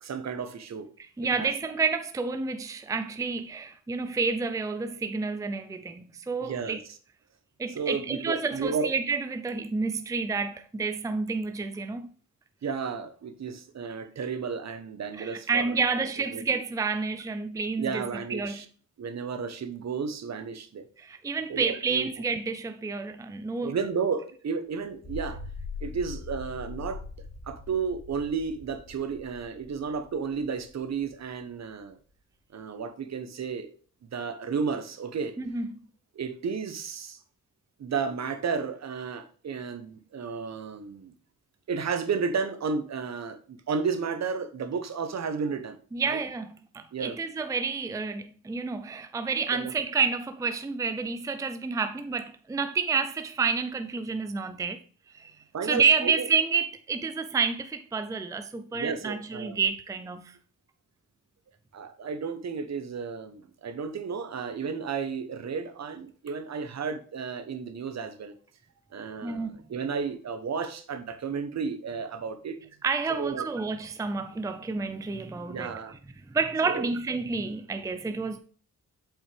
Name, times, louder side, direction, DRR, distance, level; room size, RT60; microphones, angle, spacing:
voice 1, 0.0-0.9 1.4-1.5 6.4-6.8 7.7-8.9 12.6-15.8 16.3-16.4 17.8-18.7 19.0-20.8 21.5-22.1 23.6-25.4 25.8-27.0 27.5-32.0 32.5-33.7 34.1-35.3 36.1-37.2 37.8-41.1 41.7-45.8 46.1-46.2 46.9-47.2 49.5-49.7 55.5-56.3 58.7-59.6 61.7-68.3 68.9-72.6 73.1-73.5 75.5-75.9 76.6-76.9, right 5 dB, 55° right, 1.0 m, -32 dB
voice 2, 1.0-6.8 7.6-12.1 15.1-18.0 18.3-18.6 21.0-23.8 35.4-35.7 45.9-54.8 55.1-55.3 55.6-60.4 69.2-69.6 72.8-75.7 76.3-78.4, right 4 dB, 10° right, 0.5 m, -29 dB
sound 1, 24.9-31.4, left 4 dB, 20° left, 3.0 m, -42 dB
7.5 x 5.4 x 3.3 m
wide cardioid pair, 120°, 32 cm